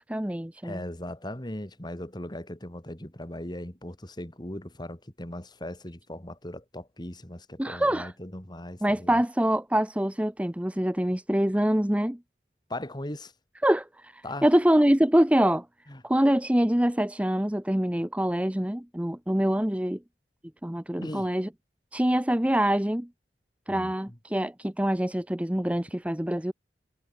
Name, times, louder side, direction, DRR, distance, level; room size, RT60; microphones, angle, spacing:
voice 1, 0.1-0.8 7.6-8.1 8.8-12.2 13.6-15.7 16.0-20.0 20.6-21.5 21.9-23.1 23.7-26.5, right 1 dB, 10° right, 0.8 m, -25 dB
voice 2, 0.6-9.2 12.7-13.3 14.2-14.5 15.9-16.0 21.0-21.3 23.7-24.2, left 1 dB, 25° left, 3.3 m, -38 dB
head